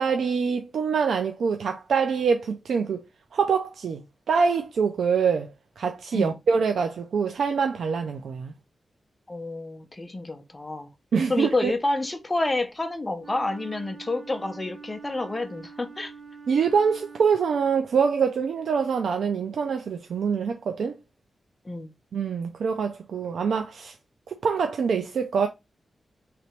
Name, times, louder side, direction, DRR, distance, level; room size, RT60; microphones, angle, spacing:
voice 1, 0.0-3.0 3.3-8.5 11.1-11.7 16.5-21.0 22.1-23.9 24.3-25.5, right 6 dB, 90° right, 0.4 m, -25 dB
voice 2, 9.3-10.9 11.3-16.1 21.6-21.9, left 2 dB, 20° left, 0.7 m, -29 dB
Wind instrument woodwind instrument, 13.2-17.7, right 5 dB, 40° right, 0.7 m, -45 dB
3.3 x 2.9 x 4.3 m
wide cardioid pair, 145°, 0 cm